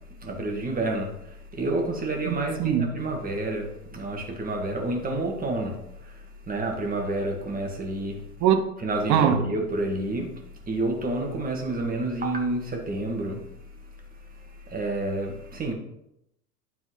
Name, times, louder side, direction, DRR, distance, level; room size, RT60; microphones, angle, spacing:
voice 1, 0.2-1.1 1.5-5.8 6.1-6.2 6.5-8.2 8.8-10.3 10.7-13.4 14.7-15.7, right 2 dB, 15° right, 1 dB, 2.1 m, -29 dB
voice 2, 2.3-2.9 8.4-8.6 9.1-9.4, right 9 dB, 35° right, 8 dB, 1.0 m, -22 dB
11.5 x 4.6 x 4.0 m, 0.80 s
figure-of-eight pair, 90°, 49 cm